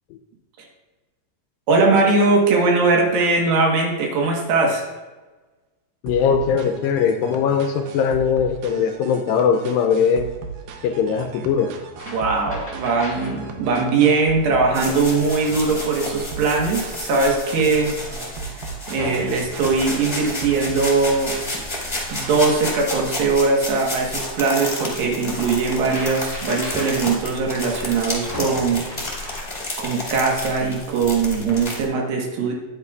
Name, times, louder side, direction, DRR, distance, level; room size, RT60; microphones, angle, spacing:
voice 1, 1.7-4.9 12.1-17.9 18.5-21.3 22.1-29.4 29.8-32.5, right 4 dB, 75° right, 0 dB, 3.0 m, -20 dB
voice 2, 6.0-10.3 10.8-11.7, left 6 dB, 80° left, 6 dB, 2.1 m, -20 dB
sound 1, 6.1-22.5, right 5 dB, 90° right, 2.8 m, -37 dB
sound 2, 12.0-13.5 13.8-14.1 14.8-15.9 16.5-16.6 16.9-17.1 17.4-18.6 19.0-29.4, left 1 dB, 5° right, 1.8 m, -39 dB
sound 3, 14.7-31.8, left 2 dB, 25° left, 0.9 m, -31 dB
9.6 x 9.4 x 2.4 m, 1.2 s
omnidirectional pair, 4.4 m